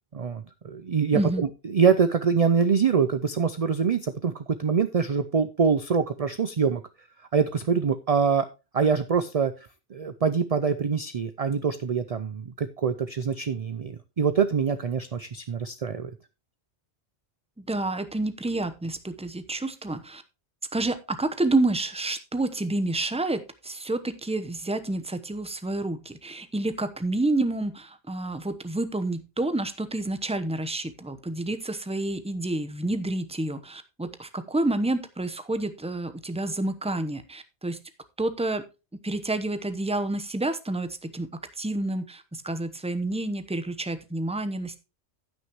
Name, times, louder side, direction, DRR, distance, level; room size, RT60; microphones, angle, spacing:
voice 1, 0.1-6.8 7.3-8.5 8.7-9.5 9.9-16.1, right 6 dB, 45° right, 11 dB, 0.5 m, -24 dB
voice 2, 1.1-1.4 17.6-20.2 20.7-37.8 38.2-38.6 39.0-44.8, right 2 dB, 5° right, 10 dB, 0.8 m, -29 dB
15.5 x 6.2 x 3.0 m, 0.29 s
omnidirectional pair, 1.2 m